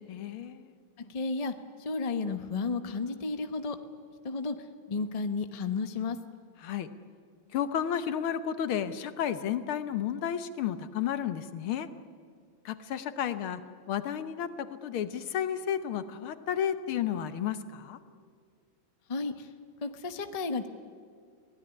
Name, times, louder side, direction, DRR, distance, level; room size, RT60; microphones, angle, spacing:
voice 1, 0.1-0.7 6.6-6.9 7.5-11.9 12.7-13.6 13.9-18.0, left 9 dB, 85° left, 11 dB, 1.9 m, -32 dB
voice 2, 1.0-1.5 1.8-3.8 4.2-4.5 4.9-6.2 19.1-19.5 19.8-20.7, left 4 dB, 30° left, 8 dB, 0.7 m, -32 dB
24.5 x 17.0 x 9.9 m, 2.2 s
omnidirectional pair, 2.3 m